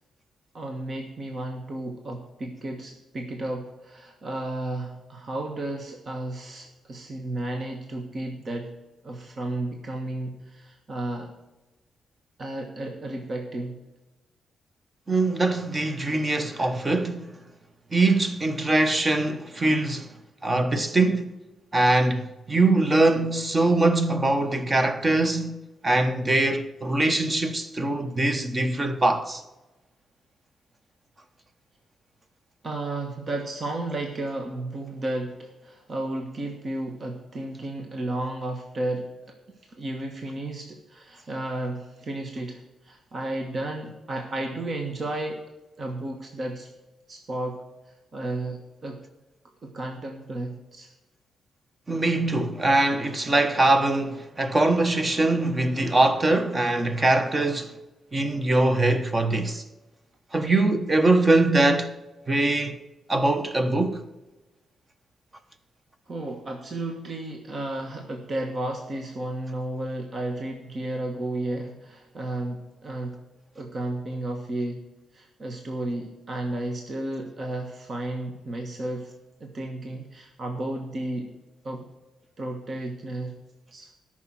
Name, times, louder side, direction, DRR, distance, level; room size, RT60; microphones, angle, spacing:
voice 1, 0.5-8.7 9.0-11.3 12.4-13.8 32.6-39.1 39.5-45.4 45.8-46.7 47.1-49.0 49.6-50.9 66.1-73.2 73.5-74.8 75.1-79.1 79.4-81.3 81.6-81.9 82.4-83.4 83.7-83.9, right 1 dB, 40° right, 1.3 m, -33 dB
voice 2, 15.1-17.3 17.9-20.1 20.4-21.3 21.7-29.4 51.9-57.7 58.1-59.6 60.3-61.9 62.3-62.8 63.1-64.0, right 2 dB, 25° right, 1.1 m, -22 dB
13.0 x 6.1 x 6.1 m
cardioid pair, 120°, 0 cm